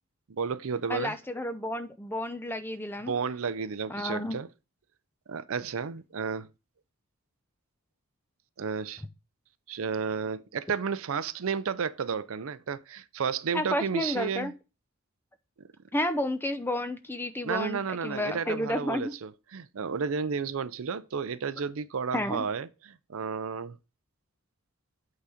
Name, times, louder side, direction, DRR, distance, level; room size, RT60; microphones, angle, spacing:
voice 1, 0.3-1.2 3.1-4.5 5.3-6.5 8.6-9.0 9.7-14.5 17.4-23.8, right 6 dB, 65° right, 0.5 m, -32 dB
voice 2, 0.9-3.1 3.9-4.4 13.5-14.5 15.9-19.1 22.1-22.4, left 1 dB, 10° left, 0.6 m, -31 dB
8.4 x 3.9 x 4.9 m
head